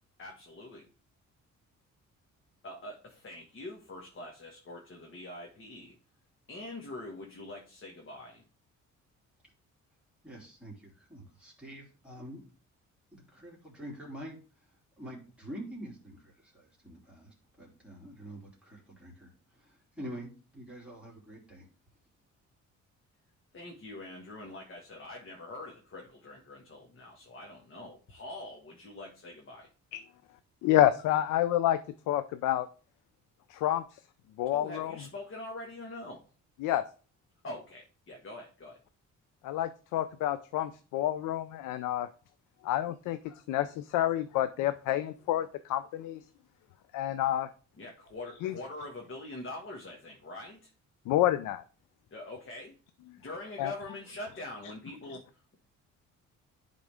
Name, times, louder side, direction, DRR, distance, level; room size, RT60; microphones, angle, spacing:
voice 1, 0.2-0.8 2.6-6.0 6.5-8.4 23.5-29.7 34.5-36.2 37.4-38.8 47.8-50.7 52.1-52.8 53.2-55.6, left 2 dB, 45° left, 0 dB, 1.5 m, -44 dB
voice 2, 10.2-12.4 13.1-14.7 15.0-21.7, equal, 5° right, -4 dB, 3.1 m, -46 dB
voice 3, 30.6-31.8 32.1-32.7 33.5-34.0 34.4-34.9 36.6-36.8 39.4-42.1 42.6-46.2 46.9-47.5 48.4-48.5 51.1-51.6 53.6-53.7, left 13 dB, 90° left, 12 dB, 0.5 m, -28 dB
10.5 x 3.8 x 3.4 m, 0.38 s
cardioid pair, 90°, 30 cm